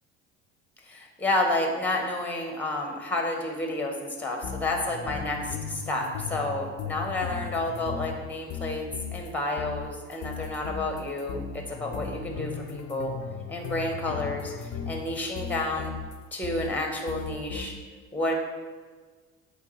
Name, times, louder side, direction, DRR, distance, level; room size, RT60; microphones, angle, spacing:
voice 1, 0.9-8.8 9.1-13.1 13.5-14.4 14.9-15.9 16.3-17.7 18.1-18.3, left 2 dB, 5° left, 2 dB, 1.2 m, -30 dB
sound 1, 4.4-9.3 9.6-16.8 17.1-17.7, left 6 dB, 60° left, 0.6 m, -37 dB
8.5 x 3.4 x 3.3 m, 1.4 s
supercardioid pair, 80°, 34 cm